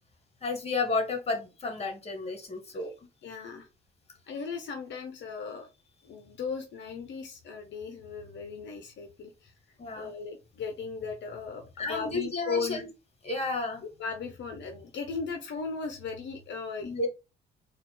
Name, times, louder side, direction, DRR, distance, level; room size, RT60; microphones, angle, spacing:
voice 1, 0.4-2.9 9.8-10.1 11.8-12.9 13.2-13.8 16.8-17.1, left 3 dB, 30° left, 5 dB, 1.7 m, -32 dB
voice 2, 3.2-3.7 4.3-5.7 6.0-9.5 9.9-12.8 14.0-16.9, left 5 dB, 65° left, 5 dB, 0.9 m, -37 dB
4.2 x 2.7 x 4.5 m, 0.28 s
cardioid pair, 90°, 20 cm